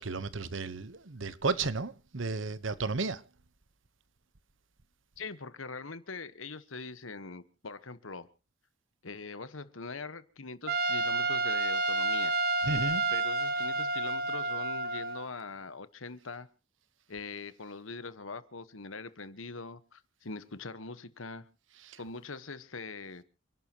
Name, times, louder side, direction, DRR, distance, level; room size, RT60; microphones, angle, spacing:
voice 1, 0.0-3.2 12.6-13.0 21.9-22.0, right 3 dB, 75° right, 1.1 m, -33 dB
voice 2, 5.2-8.3 9.0-12.3 13.1-16.5 17.1-21.5 22.0-23.2, left 4 dB, 85° left, 1.3 m, -42 dB
Trumpet, 10.7-15.3, right 2 dB, 50° right, 1.1 m, -30 dB
28.5 x 11.5 x 3.0 m
head